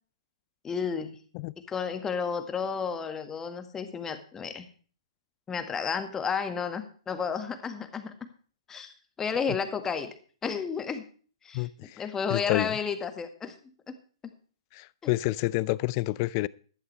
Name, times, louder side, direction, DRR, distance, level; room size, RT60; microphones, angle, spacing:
voice 1, 0.6-1.2 1.7-4.6 5.5-8.1 8.7-10.1 10.4-11.0 11.4-11.7 12.0-13.5 13.9-14.0 15.0-15.1, left 6 dB, 15° left, 1.8 m, -32 dB
voice 2, 11.5-12.0 12.3-12.7 14.7-16.5, left 20 dB, 40° left, 0.5 m, -29 dB
15.0 x 12.5 x 3.4 m
hypercardioid pair, 125°, 3 cm